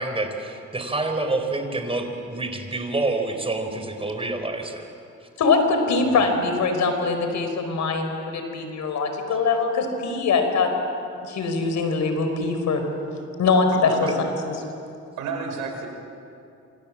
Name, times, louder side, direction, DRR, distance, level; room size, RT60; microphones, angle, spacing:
voice 1, 0.0-4.9 5.2-5.3 6.0-6.2, right 2 dB, 20° right, 5 dB, 4.4 m, -28 dB
voice 2, 5.4-10.7 11.2-12.8 13.4-14.0, left 4 dB, 65° left, 6 dB, 4.7 m, -22 dB
voice 3, 13.7-14.1 15.2-15.9, right 5 dB, 85° right, 3 dB, 5.2 m, -31 dB
26.5 x 26.5 x 7.5 m, 2.6 s
cardioid pair, 90°, 30 cm